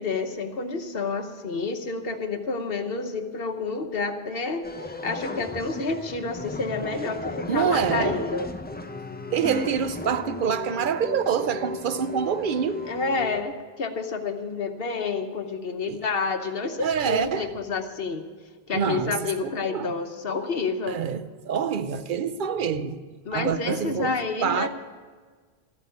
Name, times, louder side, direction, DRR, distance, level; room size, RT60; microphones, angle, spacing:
voice 1, 0.0-4.7 5.0-8.5 12.9-18.2 18.7-21.0 23.2-24.7, left 4 dB, 65° left, 1.2 m, -29 dB
sound 1, 4.6-13.4, left 2 dB, 15° left, 0.4 m, -35 dB
voice 2, 7.5-8.2 9.3-12.8 15.9-16.0 16.8-17.5 18.7-19.9 20.9-23.0 23.3-24.2 24.4-24.7, right 7 dB, 60° right, 0.8 m, -26 dB
13.5 x 8.2 x 8.2 m
omnidirectional pair, 1.1 m